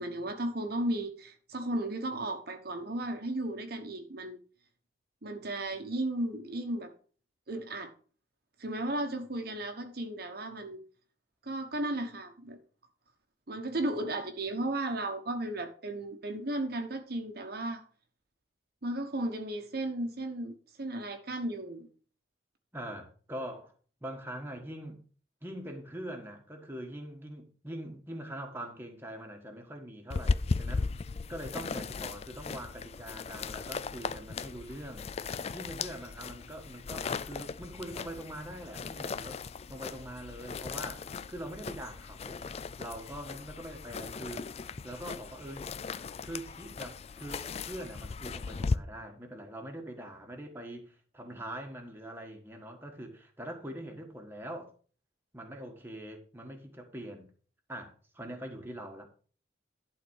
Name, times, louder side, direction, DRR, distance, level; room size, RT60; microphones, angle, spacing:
voice 1, 0.0-4.4 5.2-6.9 7.5-7.9 8.6-10.8 11.4-12.6 13.5-17.8 18.8-21.9, right 1 dB, 50° right, 1.1 m, -35 dB
voice 2, 22.7-23.7 24.0-25.0 25.4-30.9 31.3-35.1 35.5-39.4 39.7-42.4 42.8-44.5 44.8-45.7 46.2-54.7 55.3-57.3 57.7-59.1, right 1 dB, 10° right, 1.5 m, -43 dB
sound 1, 30.1-48.8, left 4 dB, 30° left, 0.3 m, -37 dB
11.5 x 4.2 x 6.3 m
head